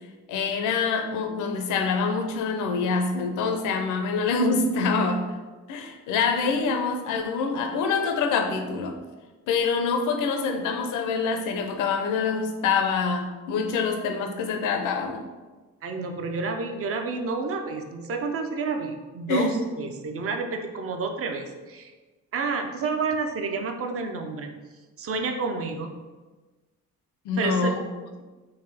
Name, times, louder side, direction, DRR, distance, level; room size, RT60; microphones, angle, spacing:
voice 1, 0.3-5.3 5.7-8.9 9.5-15.2 19.3-19.6 27.2-27.8, left 4 dB, 90° left, 5 dB, 0.6 m, -25 dB
voice 2, 15.8-21.9 22.3-24.5 25.0-25.9 27.4-27.8, right 4 dB, 50° right, 5 dB, 0.6 m, -30 dB
3.7 x 2.7 x 3.3 m, 1.3 s
cardioid pair, 90°, 30 cm